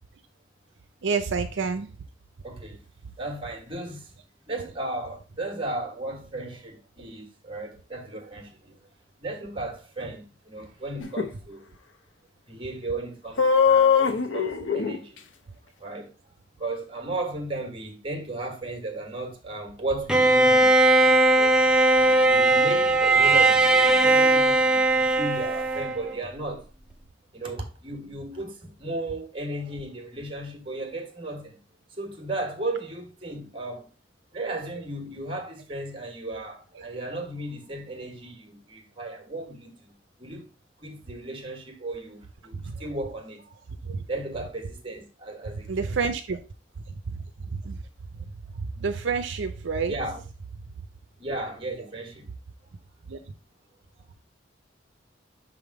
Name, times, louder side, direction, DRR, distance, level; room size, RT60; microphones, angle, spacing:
voice 1, 1.0-1.9 42.5-42.7 43.9-44.0 45.7-46.4 47.5-47.8 48.8-49.9 53.1-53.2, right 5 dB, 70° right, 0.5 m, -28 dB
voice 2, 2.4-2.8 3.2-4.1 4.4-8.8 9.2-11.7 12.5-15.2 15.8-16.1 16.6-20.8 21.3-21.6 22.2-26.7 27.3-31.6 32.0-33.9 34.3-39.9 40.2-40.5 40.8-43.6 44.1-46.0 49.9-50.2 51.2-52.3 53.0-53.3, right 2 dB, 25° right, 1.4 m, -35 dB
sound 1, 11.0-11.3 13.4-15.0, left 6 dB, 80° left, 0.7 m, -21 dB
Bowed string instrument, 20.1-26.1, right 2 dB, 5° right, 0.5 m, -19 dB
6.0 x 3.5 x 4.7 m
head